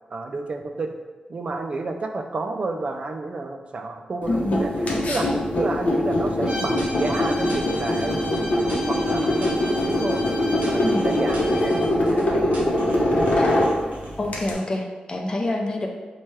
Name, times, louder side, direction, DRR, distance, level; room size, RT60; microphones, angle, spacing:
voice 1, 0.1-0.9 1.3-4.7 5.1-10.2 10.6-12.5 13.0-13.6, right 3 dB, 45° right, 5 dB, 0.3 m, -30 dB
sound 1, 4.2-14.5, left 1 dB, 65° left, 0.7 m, -23 dB
voice 2, 4.3-4.6 10.8-11.1 13.4-13.5 14.2-15.9, left 1 dB, 30° left, 2 dB, 0.5 m, -26 dB
Bowed string instrument, 6.4-11.9, left 1 dB, 30° right, 0.9 m, -35 dB
sound 2, 6.8-8.4 8.7-10.3 10.6-12.2 12.5-14.1, right 1 dB, 65° right, 0.9 m, -36 dB
3.1 x 2.3 x 4.3 m, 1.3 s
wide cardioid pair, 90°, 3 cm